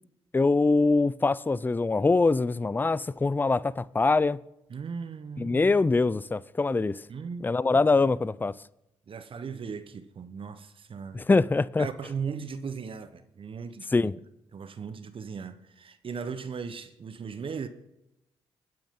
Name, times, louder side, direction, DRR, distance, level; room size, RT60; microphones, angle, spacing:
voice 1, 0.3-4.4 5.4-7.0 7.4-8.5 11.1-11.9 13.9-14.1, left 3 dB, 15° left, 0.4 m, -23 dB
voice 2, 4.7-5.7 7.1-7.5 8.0-8.1 9.1-11.2 11.8-14.1 14.5-17.7, right 6 dB, 45° right, 1.0 m, -37 dB
21.0 x 9.1 x 3.8 m
hypercardioid pair, 45°, 12 cm